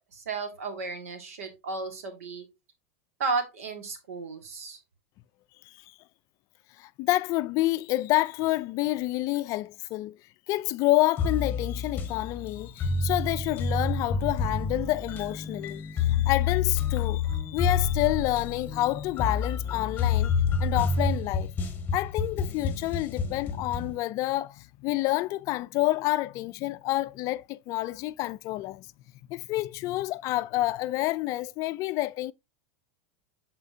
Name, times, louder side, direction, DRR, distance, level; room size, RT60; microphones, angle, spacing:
voice 1, 0.1-2.5 3.2-4.8, right 4 dB, 90° right, 1.8 m, -33 dB
voice 2, 6.8-10.2 10.5-20.3 20.6-21.5 21.9-28.9 29.3-32.3, left 17 dB, 50° left, 0.4 m, -28 dB
sound 1, 11.2-24.0, left 5 dB, 25° left, 1.1 m, -29 dB
8.0 x 4.3 x 2.7 m
supercardioid pair, 115°, 7 cm